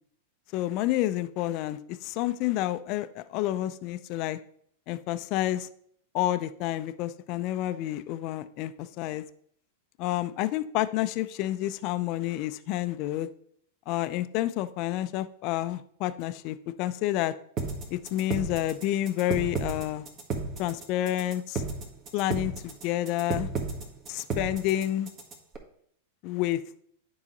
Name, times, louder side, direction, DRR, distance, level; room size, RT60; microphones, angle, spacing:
voice 1, 0.5-4.4 4.9-5.7 6.1-9.2 10.0-13.3 13.9-17.3 17.9-20.0 20.6-21.6 22.1-23.5 24.1-25.1 26.2-26.6, left 14 dB, 45° left, 12 dB, 0.4 m, -29 dB
sound 1, 17.6-25.6, right 4 dB, 35° right, 1.6 m, -33 dB
9.6 x 4.8 x 4.0 m, 0.65 s
hypercardioid pair, 95°, 0 cm